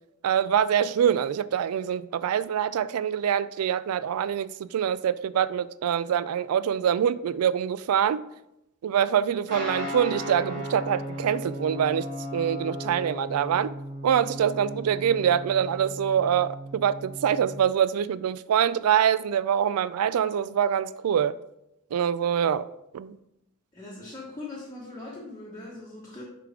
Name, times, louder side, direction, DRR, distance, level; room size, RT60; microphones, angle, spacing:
voice 1, 0.2-8.2 8.8-12.1 12.3-13.7 14.0-21.3 21.9-22.7 22.9-23.2, right 8 dB, 75° right, 0.3 m, -25 dB
Guitar, 9.5-17.5, equal, 55° right, 2.5 m, -36 dB
voice 2, 23.7-26.2, left 2 dB, 15° left, 1.1 m, -40 dB
6.7 x 4.9 x 3.6 m
head